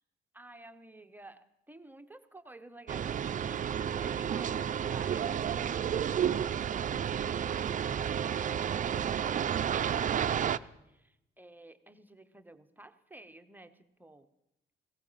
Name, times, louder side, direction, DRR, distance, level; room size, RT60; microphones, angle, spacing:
voice 1, 0.3-6.2 10.9-14.3, right 2 dB, 10° right, 9 dB, 0.8 m, -53 dB
sound 1, 2.9-10.6, right 9 dB, 40° right, 0.5 m, -31 dB
16.0 x 15.0 x 5.6 m, 0.88 s
cardioid pair, 90°, 20 cm